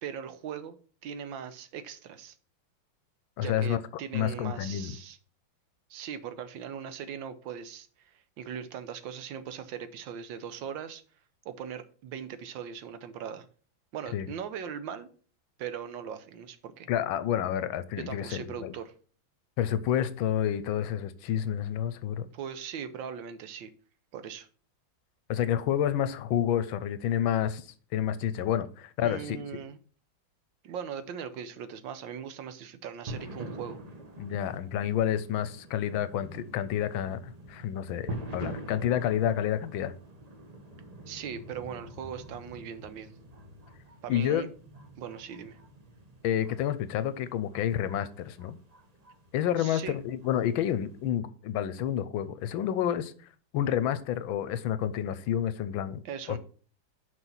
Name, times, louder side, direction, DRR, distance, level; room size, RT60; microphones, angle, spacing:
voice 1, 0.0-0.8 1.0-2.3 3.4-5.2 5.9-11.0 11.4-13.5 13.9-15.1 15.6-16.9 18.0-18.9 22.3-23.7 24.1-24.5 29.0-29.8 30.6-33.8 41.1-43.1 44.0-44.5 45.0-45.6 49.6-50.0 56.0-56.4, right 8 dB, 75° right, 1.5 m, -39 dB
voice 2, 3.4-3.8 4.1-4.9 14.1-14.3 16.9-18.7 19.6-22.3 25.3-27.6 27.9-29.4 34.2-39.9 44.1-44.5 46.2-48.6 49.3-53.1 53.5-56.0 56.3-56.4, left 10 dB, 85° left, 1.5 m, -29 dB
sound 1, 33.1-51.1, right 1 dB, 35° right, 0.6 m, -45 dB
6.3 x 5.0 x 5.8 m
omnidirectional pair, 2.2 m